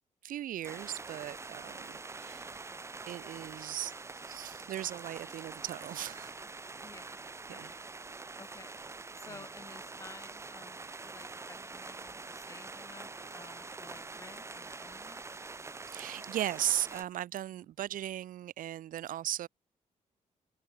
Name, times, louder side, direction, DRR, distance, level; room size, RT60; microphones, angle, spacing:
voice 1, 0.2-2.7 3.1-3.9 4.2-6.3 7.5-7.7 9.2-9.4 15.9-19.5, right 12 dB, 85° right, 1.3 m, -37 dB
sound 1, 0.6-17.0, right 3 dB, 20° right, 2.0 m, -45 dB
voice 2, 6.8-7.2 7.5-8.1 8.4-8.7 9.1-15.3 17.6-17.7, left 4 dB, 20° left, 3.9 m, -54 dB
wide cardioid pair, 160°, 14 cm